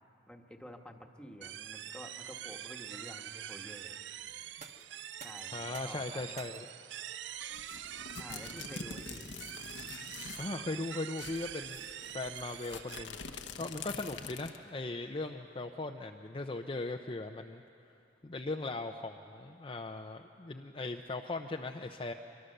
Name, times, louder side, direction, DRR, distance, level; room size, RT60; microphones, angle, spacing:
voice 1, 0.3-4.0 5.2-6.3 8.2-9.3, equal, 5° left, 3 dB, 1.3 m, -50 dB
sound 1, 1.4-13.0, right 11 dB, 70° right, 0.5 m, -45 dB
sound 2, 4.4-16.1, right 4 dB, 40° right, 1.4 m, -60 dB
voice 2, 5.5-6.7 10.4-11.8 12.1-13.2 13.6-17.6 18.2-22.1, left 2 dB, 30° left, 3 dB, 0.6 m, -39 dB
sound 3, 7.5-10.6 10.8-10.9 11.2-14.7, left 5 dB, 70° left, 1.1 m, -45 dB
25.0 x 22.5 x 6.7 m, 2.6 s
head